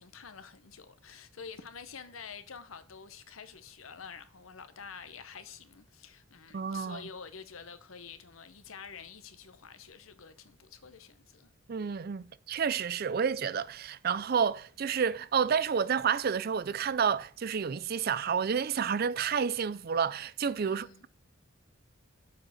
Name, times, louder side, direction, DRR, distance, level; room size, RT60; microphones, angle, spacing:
voice 1, 0.0-11.5 20.6-21.1, left 6 dB, 85° left, 0.9 m, -48 dB
voice 2, 6.5-7.0 11.7-21.1, right 6 dB, 50° right, 0.4 m, -30 dB
7.3 x 4.6 x 6.3 m
head